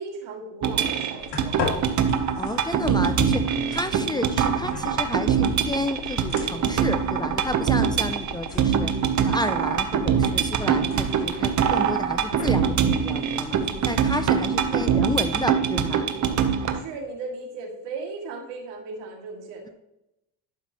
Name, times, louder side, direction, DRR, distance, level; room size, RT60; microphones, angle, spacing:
voice 1, 0.0-1.8 14.7-15.1 16.7-19.7, right 3 dB, 80° right, 0 dB, 2.5 m, -37 dB
sound 1, 0.6-16.8, right 7 dB, 45° right, 0.9 m, -24 dB
sound 2, 1.2-14.8, left 4 dB, 75° left, 2.3 m, -37 dB
voice 2, 2.4-3.4 3.7-8.9 9.3-13.6 13.8-16.1, left 1 dB, 10° left, 6 dB, 0.4 m, -31 dB
12.0 x 5.5 x 3.0 m, 0.86 s
cardioid pair, 115°, 43 cm